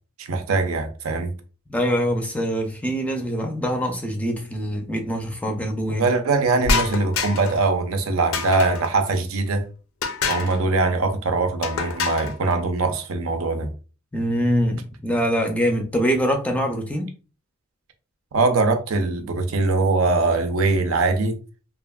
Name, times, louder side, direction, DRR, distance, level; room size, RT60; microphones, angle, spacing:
voice 1, 0.2-1.3 5.9-9.6 10.3-13.7 18.3-21.4, right 3 dB, 85° right, 0.5 m, -22 dB
voice 2, 1.7-6.0 14.1-17.1, equal, 5° left, 0.4 m, -24 dB
sound 1, 6.6-7.6 8.3-8.9 10.0-10.6 11.6-12.4, left 4 dB, 80° left, 0.4 m, -26 dB
2.8 x 2.5 x 2.2 m
head